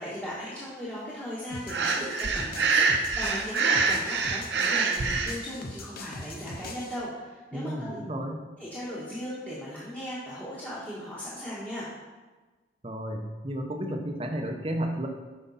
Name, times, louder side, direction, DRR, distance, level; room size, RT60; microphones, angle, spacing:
voice 1, 0.0-8.0 8.6-11.9, equal, 10° left, -9 dB, 1.5 m, -38 dB
sound 1, 1.5-7.0, left 2 dB, 50° left, 0.9 m, -41 dB
Breathing, 1.7-5.3, right 4 dB, 60° right, 0.7 m, -25 dB
voice 2, 7.5-8.4 12.8-15.1, right 1 dB, 30° right, 3 dB, 0.9 m, -32 dB
9.0 x 5.5 x 4.2 m, 1.3 s
head